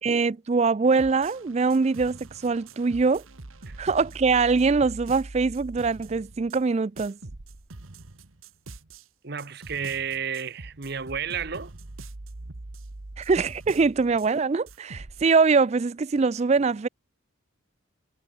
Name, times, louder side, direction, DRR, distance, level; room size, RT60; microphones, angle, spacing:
voice 1, 0.0-3.2 3.8-7.2 13.2-16.9, right 4 dB, 30° right, 0.3 m, -23 dB
sound 1, 0.9-6.7 7.0-9.1 9.4-14.3 14.7-15.3, right 2 dB, 80° right, 1.4 m, -43 dB
voice 2, 9.2-11.7, right 7 dB, 50° right, 1.0 m, -32 dB
head